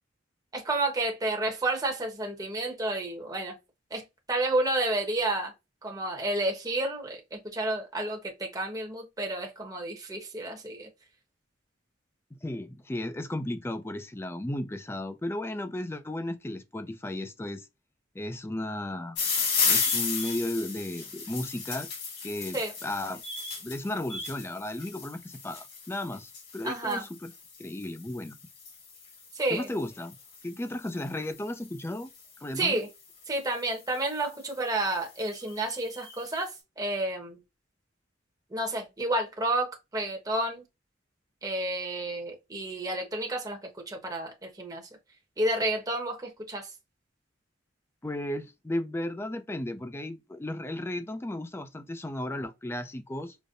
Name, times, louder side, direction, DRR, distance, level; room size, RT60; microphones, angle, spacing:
voice 1, 0.5-3.5 3.9-4.0 4.3-5.5 5.8-10.9 22.5-22.7 26.6-27.0 29.3-29.7 32.6-32.9 33.3-37.4 38.5-40.6 41.4-43.6 43.9-44.8 45.4-46.7, right 2 dB, 20° right, 0.9 m, -30 dB
voice 2, 12.4-17.7 18.1-19.2 19.6-21.9 22.2-23.2 23.6-27.3 27.6-28.4 29.5-30.2 30.4-32.1 32.4-32.8 48.0-53.4, left 1 dB, 15° left, 0.4 m, -34 dB
sound 1, 19.1-32.4 33.2-33.6 34.2-34.3 34.5-34.6 34.9-36.3, left 5 dB, 65° left, 2.1 m, -34 dB
5.1 x 2.1 x 2.5 m
head